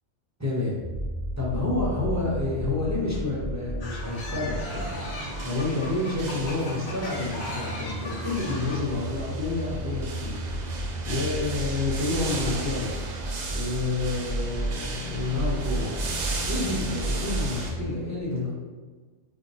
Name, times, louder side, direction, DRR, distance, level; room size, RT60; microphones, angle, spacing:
voice 1, 0.4-0.7 1.4-5.1 5.4-10.4 10.7-12.9 13.5-15.9 16.4-18.5, left 2 dB, 15° right, -7 dB, 0.7 m, -29 dB
sound 1, 0.8-17.8, right 1 dB, 35° left, 0.6 m, -33 dB
sound 2, 3.8-8.8, left 2 dB, 55° left, 0.9 m, -38 dB
sound 3, 4.7-17.7, right 3 dB, 75° right, 0.4 m, -36 dB
5.4 x 2.6 x 3.0 m, 1.4 s
omnidirectional pair, 1.4 m